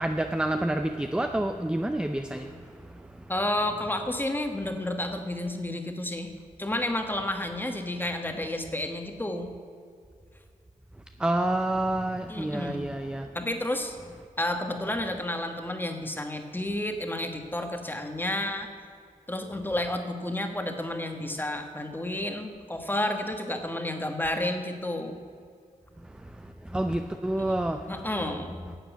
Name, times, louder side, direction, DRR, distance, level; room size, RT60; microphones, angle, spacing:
voice 1, 0.0-2.7 11.2-13.3 26.2-28.0, right 1 dB, 5° right, 6 dB, 0.5 m, -28 dB
voice 2, 3.3-6.3 6.6-9.5 12.3-12.9 13.3-14.0 14.4-18.7 19.3-25.2 27.4-27.5 27.9-28.7, left 1 dB, 15° left, 6 dB, 1.3 m, -31 dB
11.5 x 7.8 x 8.2 m, 2.2 s
wide cardioid pair, 105°, 14 cm